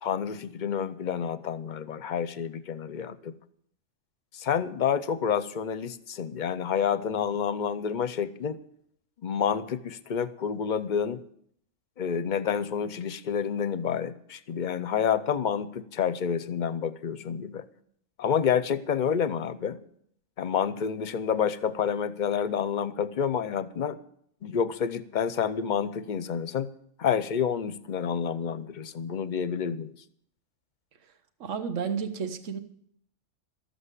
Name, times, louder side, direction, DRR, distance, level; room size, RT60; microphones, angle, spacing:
voice 1, 0.0-3.3 4.3-8.6 9.2-11.2 12.0-17.6 18.2-19.8 20.4-24.0 24.4-26.7 27.0-29.9, left 7 dB, 45° left, 14 dB, 0.7 m, -29 dB
voice 2, 31.4-32.6, right 6 dB, 75° right, 9 dB, 1.4 m, -31 dB
13.5 x 7.8 x 8.2 m, 0.68 s
omnidirectional pair, 1.3 m